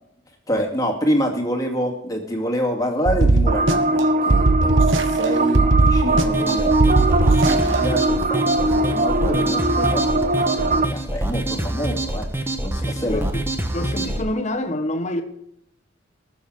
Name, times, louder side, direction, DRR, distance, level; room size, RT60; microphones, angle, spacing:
voice 1, 0.5-12.3 12.6-13.3, equal, 20° left, 2.3 m, -27 dB
sound 1, 3.1-4.0 4.3-5.3 5.6-6.5 6.8-7.8, right 2 dB, 70° right, 1.1 m, -18 dB
sound 2, 3.5-10.9, right 2 dB, 40° right, 0.7 m, -21 dB
sound 3, 6.1-14.2, right 1 dB, 10° right, 1.1 m, -26 dB
voice 2, 12.6-15.2, left 1 dB, 35° left, 1.4 m, -28 dB
20.0 x 7.2 x 5.1 m
head